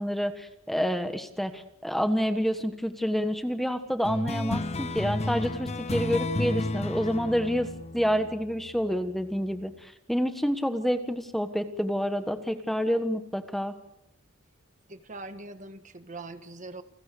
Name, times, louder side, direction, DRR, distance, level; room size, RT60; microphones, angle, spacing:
voice 1, 0.0-7.7 7.9-13.7, equal, ahead, 7 dB, 1.4 m, -28 dB
sound 1, 4.0-9.0, left 2 dB, 30° left, 1.0 m, -32 dB
voice 2, 14.9-16.8, right 2 dB, 40° right, 9 dB, 1.6 m, -42 dB
29.5 x 19.5 x 6.8 m, 0.82 s
head